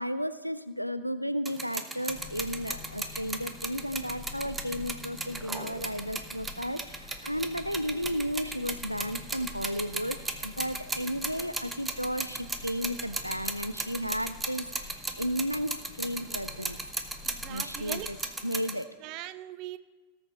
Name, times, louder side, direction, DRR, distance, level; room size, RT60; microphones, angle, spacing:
voice 1, 0.0-16.8 17.5-18.2 18.4-18.9, equal, 90° right, 12 dB, 0.4 m, -34 dB
sound 1, 1.5-18.8, right 3 dB, 10° right, 0.9 m, -36 dB
sound 2, 2.1-18.3, left 5 dB, 25° left, 1.4 m, -48 dB
voice 2, 17.2-18.1 19.0-19.8, right 14 dB, 40° right, 14 dB, 0.6 m, -40 dB
18.5 x 6.8 x 4.0 m, 1.3 s
figure-of-eight pair, 90°, 0 cm